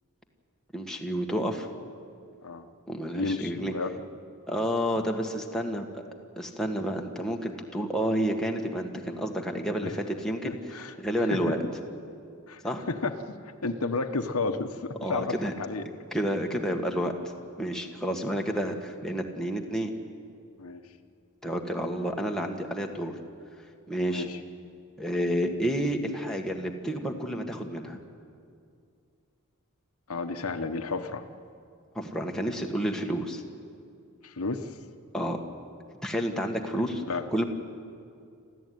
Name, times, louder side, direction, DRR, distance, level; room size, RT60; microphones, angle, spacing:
voice 1, 0.7-1.7 2.9-3.7 4.5-6.0 6.4-10.6 11.0-11.6 12.6-12.8 15.0-15.5 16.1-17.1 17.6-20.0 21.4-23.2 23.9-24.3 25.0-28.0 31.9-33.4 35.1-35.4 36.0-37.0 37.3-37.4, equal, 5° left, 1 dB, 1.6 m, -30 dB
voice 2, 3.1-3.9 9.8-9.9 10.4-10.9 11.3-11.4 12.5-12.6 12.9-13.2 13.6-15.8 20.6-20.8 24.1-24.4 30.1-31.2 34.2-34.7 37.0-37.3, left 3 dB, 75° left, 7 dB, 1.1 m, -31 dB
26.5 x 14.5 x 9.4 m, 2.4 s
head